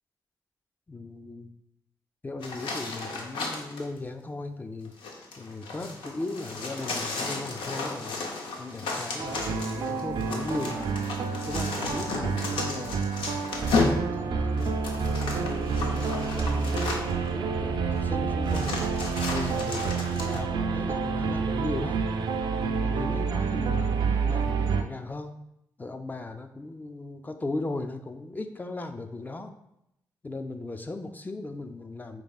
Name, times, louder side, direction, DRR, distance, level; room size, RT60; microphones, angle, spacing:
voice 1, 0.9-1.5 2.2-8.2 8.6-11.0 11.5-13.3 13.6-14.7 15.0-18.8 19.3-22.1 22.6-25.4 25.8-29.6 30.2-32.2, left 2 dB, 20° left, 7 dB, 0.4 m, -37 dB
sound 1, 2.4-3.9 4.9-17.3 18.0-18.1 18.5-20.4, left 3 dB, 80° left, 0.6 m, -33 dB
sound 2, 9.2-24.8, right 5 dB, 65° right, 0.4 m, -28 dB
4.7 x 3.2 x 2.3 m, 0.81 s
supercardioid pair, 55°, 8 cm